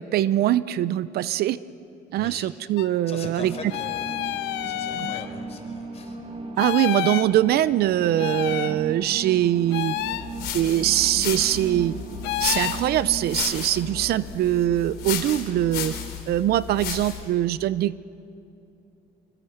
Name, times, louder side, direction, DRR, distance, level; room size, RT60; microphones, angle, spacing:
voice 1, 0.0-1.6 2.1-3.5 6.6-9.9 10.5-11.9 12.4-15.9 16.3-18.0, right 13 dB, 70° right, 17 dB, 0.6 m, -22 dB
voice 2, 2.2-2.5 3.1-6.2 13.4-13.6, left 4 dB, 40° left, 4 dB, 4.6 m, -41 dB
sound 1, 2.8-2.9 3.7-5.3 6.6-7.3 8.2-8.8 9.7-10.3 12.2-12.8, left 15 dB, 90° left, 0.9 m, -29 dB
sound 2, 3.4-16.1, right 4 dB, 35° right, 2.6 m, -38 dB
sound 3, 10.0-17.3, left 10 dB, 70° left, 3.2 m, -34 dB
25.5 x 24.5 x 8.0 m, 2.6 s
cardioid pair, 110°, 17 cm